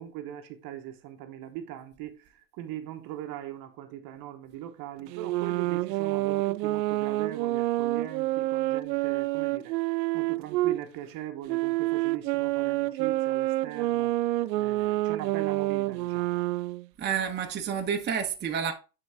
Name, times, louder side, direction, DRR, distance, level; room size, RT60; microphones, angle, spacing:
voice 1, 0.0-9.7 10.1-16.4, right 12 dB, 45° right, 1.1 m, -40 dB
sound 1, 5.1-10.8 11.5-16.9, right 18 dB, 85° right, 0.6 m, -28 dB
voice 2, 17.0-18.7, right 7 dB, 20° right, 1.0 m, -29 dB
9.3 x 4.0 x 3.4 m
supercardioid pair, 120°, 49 cm